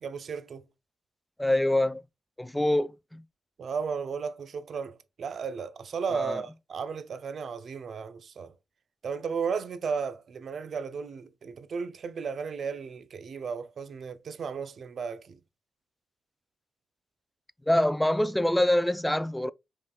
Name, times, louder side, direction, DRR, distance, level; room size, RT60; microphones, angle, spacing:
voice 1, 0.0-0.7 3.6-8.5 9.0-15.4, right 6 dB, 65° right, 0.4 m, -34 dB
voice 2, 1.4-2.0 2.4-3.2 6.1-6.4 17.7-19.5, left 1 dB, 10° left, 0.3 m, -25 dB
5.4 x 3.6 x 2.2 m
supercardioid pair, 50°, 0 cm